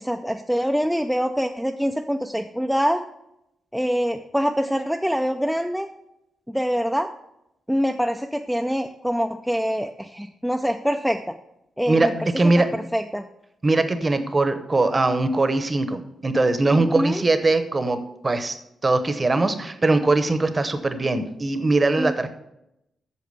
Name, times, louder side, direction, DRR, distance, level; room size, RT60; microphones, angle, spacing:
voice 1, 0.0-3.0 3.7-5.9 6.5-7.1 7.7-11.3 11.8-13.3 16.7-17.2 22.0-22.1, equal, ahead, 4 dB, 0.4 m, -25 dB
voice 2, 12.4-12.7 13.6-18.6 18.8-22.3, right 2 dB, 20° right, 10 dB, 0.8 m, -21 dB
8.4 x 6.8 x 6.7 m, 0.84 s
wide cardioid pair, 160°, 0 cm